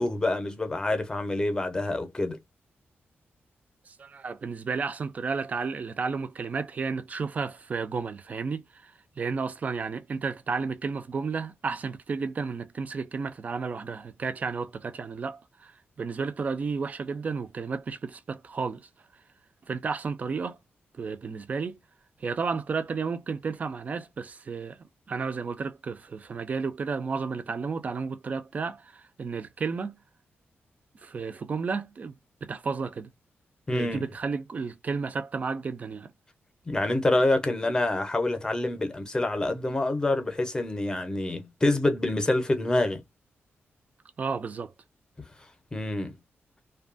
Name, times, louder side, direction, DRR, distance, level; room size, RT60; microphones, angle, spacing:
voice 1, 0.0-2.4 33.7-34.0 36.7-43.0 45.7-46.2, left 2 dB, 15° left, 0.6 m, -26 dB
voice 2, 3.9-18.8 19.7-20.6 21.0-21.8 22.2-30.0 31.0-32.1 32.4-33.1 33.7-36.1 44.2-44.7, right 5 dB, 35° right, 0.4 m, -32 dB
2.7 x 2.2 x 2.5 m
wide cardioid pair, 165°, 4 cm